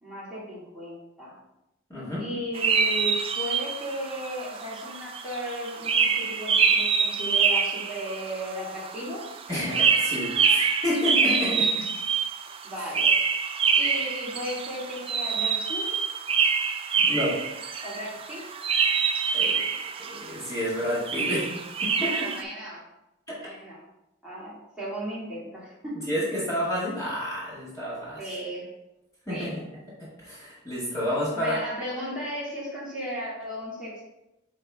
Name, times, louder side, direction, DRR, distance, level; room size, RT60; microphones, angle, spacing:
voice 1, 0.0-1.4 2.2-9.4 11.4-11.6 12.6-13.1 13.8-16.0 17.8-18.5 21.9-22.8 23.4-23.8 24.2-26.1 28.2-28.7 29.3-29.6 31.3-34.0, equal, 5° right, -9 dB, 2.2 m, -35 dB
voice 2, 1.9-2.3 9.5-11.7 17.0-17.4 19.3-19.6 20.0-21.5 21.8-22.3 23.3-23.4 26.1-28.2 29.3-29.5 30.0-31.6, left 1 dB, 15° left, -9 dB, 2.0 m, -30 dB
sound 1, 2.5-22.4, right 6 dB, 25° right, 0.4 m, -26 dB
9.2 x 3.2 x 3.5 m, 0.91 s
head